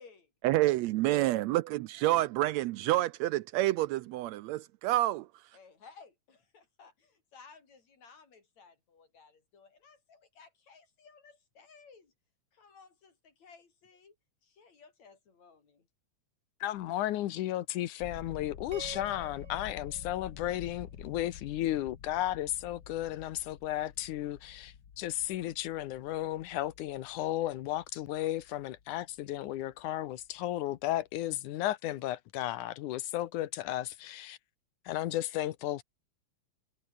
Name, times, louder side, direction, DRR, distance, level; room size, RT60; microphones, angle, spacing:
voice 1, 0.4-5.3, right 16 dB, 80° right, 1.7 m, -28 dB
voice 2, 5.5-12.1 12.5-14.2 14.4-15.9, left 5 dB, 65° left, 5.6 m, -57 dB
voice 3, 16.6-34.4 34.9-35.8, left 14 dB, 85° left, 2.5 m, -34 dB
sound 1, 18.0-29.9 30.1-30.5 30.8-31.0, left 7 dB, 45° left, 1.8 m, -50 dB
sound 2, 18.7-21.1, right 5 dB, 30° right, 2.0 m, -50 dB
omnidirectional pair, 3.4 m